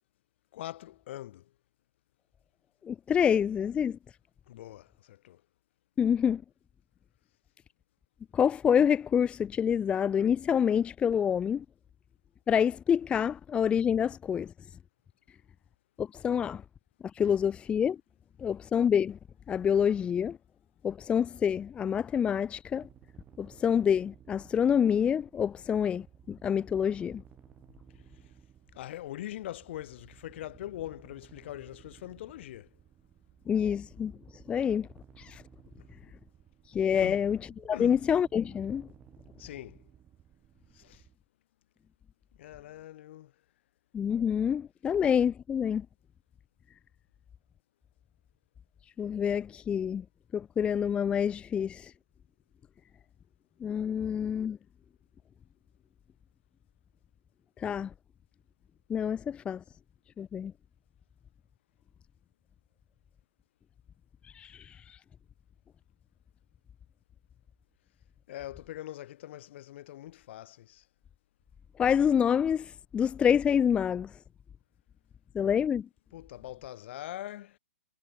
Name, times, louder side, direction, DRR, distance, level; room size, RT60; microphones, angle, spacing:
voice 1, 0.5-1.5 4.5-5.4 28.7-32.7 37.0-37.3 37.7-38.0 39.4-39.8 40.7-41.0 42.4-43.3 68.3-70.9 76.1-77.6, left 14 dB, 50° left, 2.1 m, -42 dB
voice 2, 2.8-4.0 6.0-6.4 8.3-11.6 12.5-14.5 16.0-16.6 17.2-18.0 18.4-19.2 19.5-20.4 20.8-22.9 23.4-27.2 33.5-34.1 34.5-34.9 35.2-35.4 36.7-37.4 37.6-38.9 43.9-45.9 49.0-50.0 50.3-51.9 53.6-54.6 57.6-57.9 58.9-59.6 60.2-60.5 64.2-65.0 71.8-74.1 75.3-75.9, left 8 dB, 15° left, 0.7 m, -27 dB
sound 1, 22.7-41.1, right 10 dB, 15° right, 4.7 m, -57 dB
hypercardioid pair, 140°, 8 cm